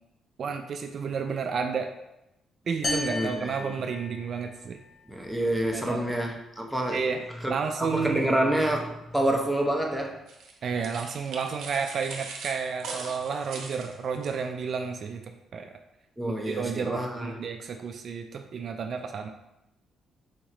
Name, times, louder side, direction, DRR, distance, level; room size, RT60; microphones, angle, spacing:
voice 1, 0.4-1.9 2.7-4.8 5.7-6.1 6.9-8.3 10.6-15.2 15.5-15.7 16.2-19.3, right 5 dB, 55° right, 5 dB, 0.4 m, -31 dB
sound 1, 2.8-4.6, left 2 dB, 35° left, 1.1 m, -33 dB
voice 2, 3.1-3.8 5.1-7.1 7.4-7.5 7.8-10.2 16.2-17.4, right 1 dB, ahead, 0 dB, 0.8 m, -28 dB
sound 2, 10.3-14.3, right 4 dB, 80° right, 0.7 m, -41 dB
4.2 x 3.0 x 3.7 m, 0.88 s
cardioid pair, 90°, 0 cm